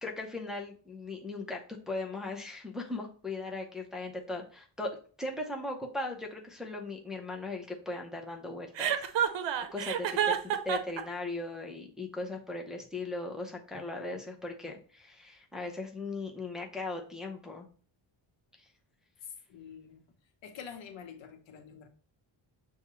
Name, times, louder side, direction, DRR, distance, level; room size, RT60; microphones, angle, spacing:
voice 1, 0.0-9.1 9.6-17.7 18.6-18.7, left 2 dB, ahead, 0 dB, 0.6 m, -38 dB
Chuckle chortle, 8.8-11.0, right 9 dB, 80° right, 0.6 m, -29 dB
voice 2, 19.2-20.0 20.4-21.9, left 7 dB, 90° left, 7 dB, 0.9 m, -46 dB
6.9 x 2.3 x 3.0 m, 0.42 s
wide cardioid pair, 145°, 44 cm